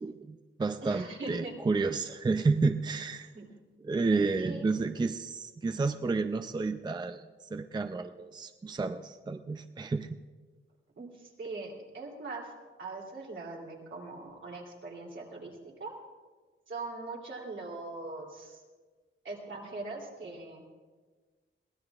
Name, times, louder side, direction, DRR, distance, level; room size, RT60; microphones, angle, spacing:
voice 1, 0.0-3.3 3.8-10.2, right 3 dB, 20° right, 8 dB, 0.4 m, -31 dB
voice 2, 0.8-1.6 3.3-3.5 4.4-4.8 11.0-12.5 12.8-15.9 16.7-18.6 19.2-20.6, right 3 dB, 70° right, -1 dB, 3.0 m, -41 dB
22.5 x 17.0 x 2.4 m, 1.4 s
wide cardioid pair, 145°, 21 cm